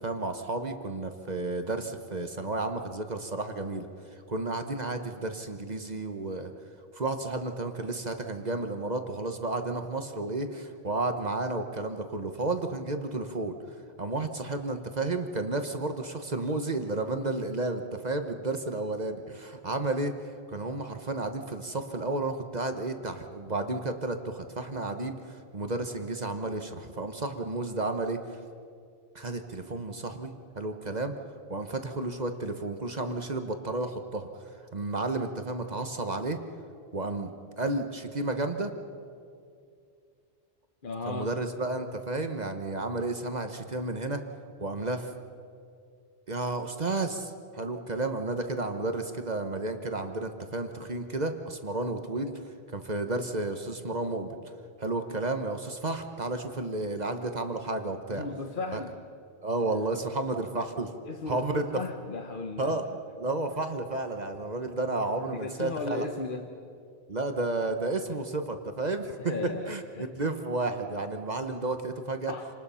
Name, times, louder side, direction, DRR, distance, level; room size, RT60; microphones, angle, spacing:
voice 1, 0.0-3.9 4.3-6.5 6.9-13.5 14.0-20.1 20.5-28.4 29.1-31.1 31.5-34.3 34.7-36.4 36.9-37.3 37.6-38.7 41.1-44.2 44.6-45.1 46.3-52.3 52.7-54.4 54.8-58.2 58.7-58.8 59.4-60.9 61.3-61.6 62.6-62.8 63.2-66.1 67.1-69.2 69.7-69.8 70.2-72.3, right 2 dB, 45° right, 7 dB, 1.2 m, -32 dB
voice 2, 40.8-41.3 58.1-58.9 61.0-63.0 65.3-66.5 69.2-70.1 72.3-72.5, left 3 dB, 55° left, 5 dB, 1.2 m, -36 dB
27.5 x 19.0 x 5.7 m, 2.4 s
omnidirectional pair, 1.1 m